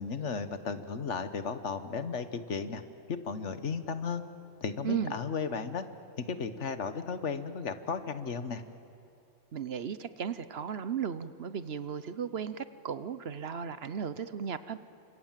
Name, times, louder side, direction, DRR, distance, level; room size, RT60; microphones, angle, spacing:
voice 1, 0.0-2.8 3.1-4.2 4.6-5.8 6.2-8.6, left 5 dB, 70° left, 10 dB, 1.5 m, -34 dB
voice 2, 4.8-5.2 9.5-14.8, right 7 dB, 60° right, 13 dB, 1.0 m, -35 dB
30.0 x 26.0 x 7.5 m, 2.8 s
omnidirectional pair, 1.3 m